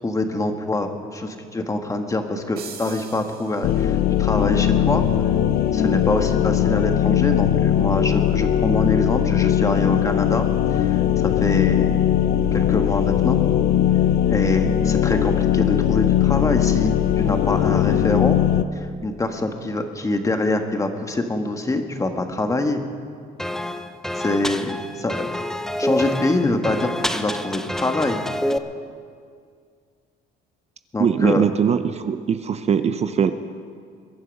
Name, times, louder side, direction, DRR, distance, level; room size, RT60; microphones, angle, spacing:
voice 1, 0.0-5.0 5.7-12.0 12.5-13.4 14.3-18.4 18.7-22.8 24.1-25.4 25.8-28.2 30.9-31.5, left 2 dB, 20° left, 5 dB, 1.4 m, -25 dB
sound 1, 2.6-4.2, right 7 dB, 65° right, 2.0 m, -41 dB
sound 2, 3.6-18.6, left 10 dB, 70° left, 0.7 m, -19 dB
sound 3, 23.4-28.6, left 1 dB, 5° left, 0.7 m, -27 dB
voice 2, 31.0-33.3, right 7 dB, 40° right, 10 dB, 0.7 m, -21 dB
22.0 x 11.0 x 5.3 m, 2.2 s
cardioid pair, 110°, 17 cm